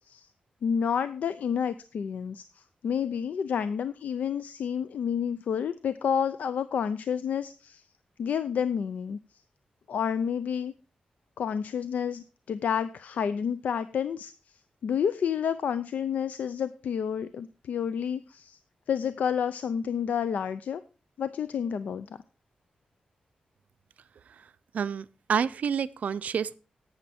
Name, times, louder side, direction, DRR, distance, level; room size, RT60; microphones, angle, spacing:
voice 1, 0.6-7.8 8.2-9.2 9.9-10.7 11.4-14.3 14.8-18.6 18.9-20.8 21.2-22.1, left 7 dB, 80° left, 14 dB, 0.5 m, -29 dB
voice 2, 24.7-26.6, right 7 dB, 70° right, 15 dB, 0.5 m, -28 dB
11.5 x 8.8 x 4.2 m, 0.34 s
wide cardioid pair, 125°, 3 cm